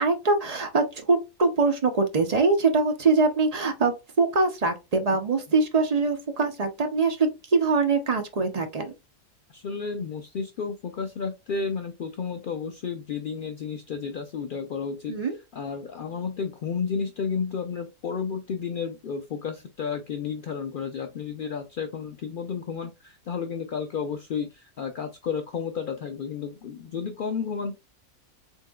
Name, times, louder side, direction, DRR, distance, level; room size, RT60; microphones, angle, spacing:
voice 1, 0.0-8.9 15.1-15.3, right 3 dB, 40° right, 0.6 m, -23 dB
voice 2, 9.5-15.2 15.5-27.8, left 6 dB, 75° left, 0.4 m, -32 dB
4.4 x 3.6 x 2.3 m
omnidirectional pair, 1.5 m